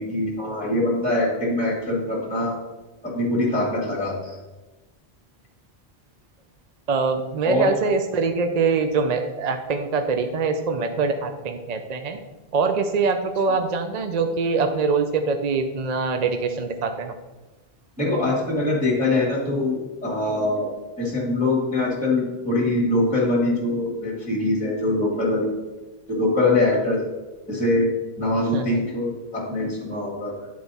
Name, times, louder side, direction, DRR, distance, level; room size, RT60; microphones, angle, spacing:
voice 1, 0.0-2.5 3.0-4.3 7.4-7.7 18.0-20.7 21.0-25.5 26.1-27.1 27.5-27.9 28.2-30.5, left 2 dB, 5° left, -4 dB, 1.6 m, -23 dB
voice 2, 6.9-12.2 12.5-17.1 28.5-28.8, right 4 dB, 50° right, 6 dB, 0.5 m, -23 dB
10.0 x 4.6 x 4.0 m, 1.1 s
omnidirectional pair, 1.1 m